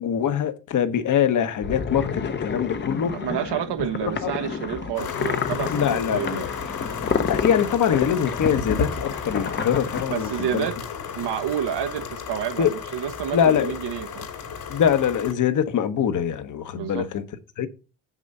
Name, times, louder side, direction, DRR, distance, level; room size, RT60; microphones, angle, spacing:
voice 1, 0.0-3.1 4.0-4.3 5.7-6.5 7.3-10.7 12.6-12.7 13.3-13.7 14.7-17.2 17.6-17.7, left 8 dB, 45° left, 1.0 m, -23 dB
sound 1, 1.6-10.0, left 5 dB, 25° left, 0.7 m, -29 dB
voice 2, 3.1-6.5 10.1-10.8 11.2-14.3 16.7-17.1, right 10 dB, 70° right, 0.9 m, -29 dB
sound 2, 4.9-15.3, left 7 dB, 65° left, 2.7 m, -34 dB
7.8 x 6.1 x 5.3 m
cardioid pair, 165°, 42 cm